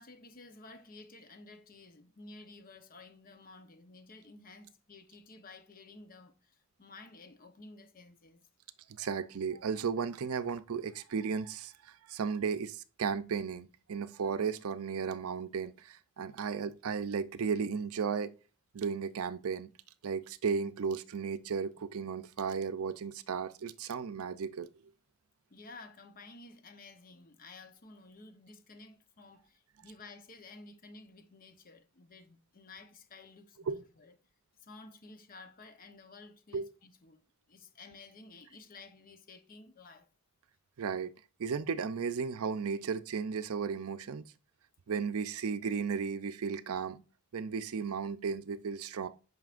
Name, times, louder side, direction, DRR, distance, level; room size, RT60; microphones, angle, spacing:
voice 1, 0.0-8.5 25.5-34.2 34.6-37.2 37.5-40.1, left 3 dB, 40° left, 0.9 m, -53 dB
voice 2, 9.0-18.3 18.7-19.7 20.0-24.7 33.7-33.8 36.5-36.7 40.8-41.1 41.4-44.2 44.9-47.0 47.3-49.1, right 6 dB, 70° right, 0.5 m, -35 dB
9.1 x 5.6 x 2.5 m
head